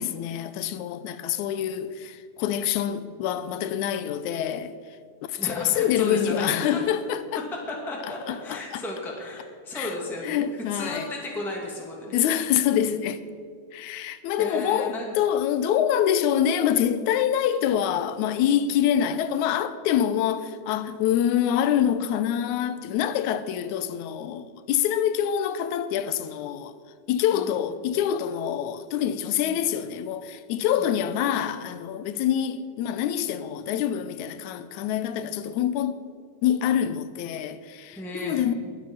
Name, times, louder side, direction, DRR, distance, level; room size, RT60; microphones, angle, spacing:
voice 1, 0.0-4.7 5.2-7.4 8.3-8.8 9.7-9.9 10.2-11.1 12.1-13.2 13.7-26.7 27.1-36.0 36.4-38.5, left 10 dB, 80° left, 2.0 m, -26 dB
voice 2, 5.4-6.9 7.7-12.1 13.9-14.0 14.4-15.1 27.3-27.5 29.4-29.6 30.8-30.9 37.9-38.4, left 1 dB, ahead, 2.0 m, -34 dB
21.5 x 8.6 x 5.6 m
omnidirectional pair, 3.5 m